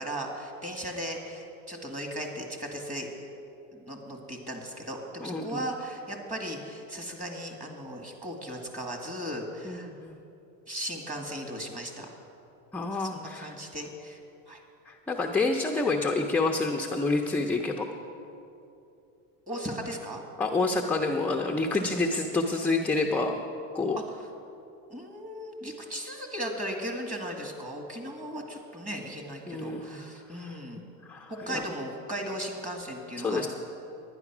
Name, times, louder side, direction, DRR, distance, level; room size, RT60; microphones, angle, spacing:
voice 1, 0.0-3.1 3.7-9.9 10.7-12.1 12.9-14.2 14.5-14.6 19.5-20.2 24.1-24.2 24.9-30.8 31.3-33.5, equal, 20° right, 2 dB, 1.9 m, -37 dB
voice 2, 5.2-5.7 9.6-10.2 12.7-13.5 14.9-17.9 20.4-23.5 23.7-24.0 29.5-30.0 30.3-30.6 31.0-31.7 33.2-33.5, left 3 dB, 5° left, 1 dB, 0.4 m, -28 dB
11.0 x 10.0 x 6.0 m, 2.8 s
supercardioid pair, 125°, 39 cm